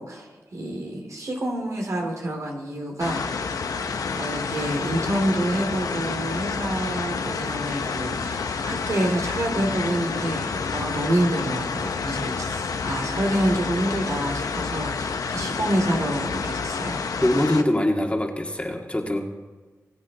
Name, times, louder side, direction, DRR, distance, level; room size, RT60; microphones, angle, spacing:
voice 1, 0.0-3.8 4.1-17.1, right 1 dB, 65° right, 2 dB, 2.8 m, -28 dB
sound 1, 3.0-17.6, left 5 dB, 90° left, 0.8 m, -29 dB
voice 2, 17.2-19.3, left 1 dB, 20° left, 1 dB, 2.0 m, -23 dB
22.0 x 8.5 x 4.1 m, 1.3 s
cardioid pair, 50°, 6 cm